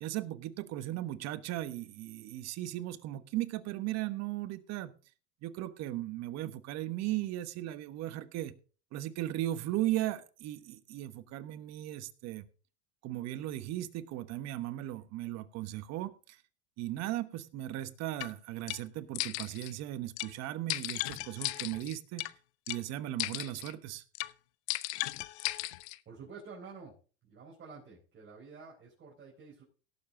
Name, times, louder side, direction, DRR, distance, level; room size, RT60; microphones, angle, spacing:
voice 1, 0.0-4.9 5.4-8.5 8.9-12.4 13.0-16.4 16.8-22.2 22.7-24.0, right 14 dB, 55° right, 12 dB, 1.3 m, -37 dB
sound 1, 18.2-18.3 18.7-18.8 19.1-19.7 20.2-20.3 20.7-22.3 22.7-22.8 23.2-23.7 24.1-24.3 24.7-26.0, left 19 dB, 85° left, 0.7 m, -36 dB
voice 2, 26.0-26.9 27.2-29.6, right 4 dB, 35° right, -4 dB, 4.7 m, -49 dB
17.5 x 7.2 x 3.8 m, 0.37 s
supercardioid pair, 115°, 33 cm